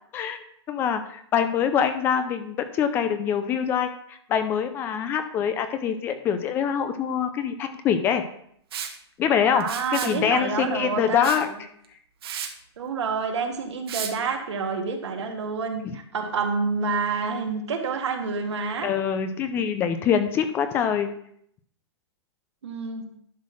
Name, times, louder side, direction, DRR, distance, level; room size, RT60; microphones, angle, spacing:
voice 1, 0.7-8.2 9.2-11.5 15.8-16.0 18.8-21.1, left 8 dB, 15° left, 9 dB, 0.5 m, -24 dB
Liquid, 8.7-9.0 9.6-10.2 11.2-11.4 11.8-11.9 12.2-12.5 13.9-14.1, right 8 dB, 60° right, 1.3 m, -33 dB
voice 2, 9.6-11.6 12.8-18.9 22.6-23.1, right 5 dB, 80° right, 3 dB, 1.9 m, -28 dB
11.5 x 4.0 x 6.1 m, 0.68 s
hypercardioid pair, 160°, 14 cm